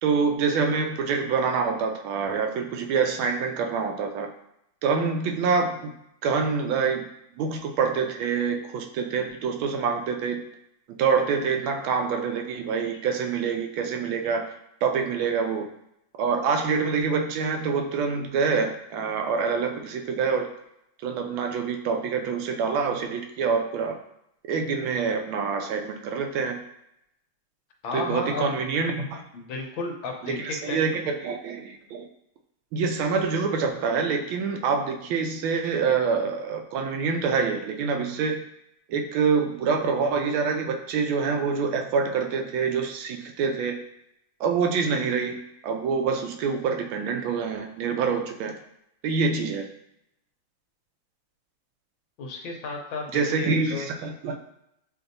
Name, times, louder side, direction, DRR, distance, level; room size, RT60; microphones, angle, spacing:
voice 1, 0.0-4.3 4.8-5.9 6.2-7.1 7.4-10.4 10.9-14.5 14.8-15.7 16.2-20.5 21.0-24.0 24.5-26.6 27.9-29.2 30.2-32.1 32.7-38.4 38.9-43.8 44.4-45.4 45.6-48.5 49.0-49.6 53.1-54.4, right 5 dB, 80° right, 4 dB, 1.4 m, -26 dB
voice 2, 27.8-28.5 29.3-30.8 52.2-53.9, left 3 dB, 75° left, 2 dB, 1.4 m, -33 dB
7.6 x 2.6 x 2.6 m, 0.79 s
omnidirectional pair, 2.3 m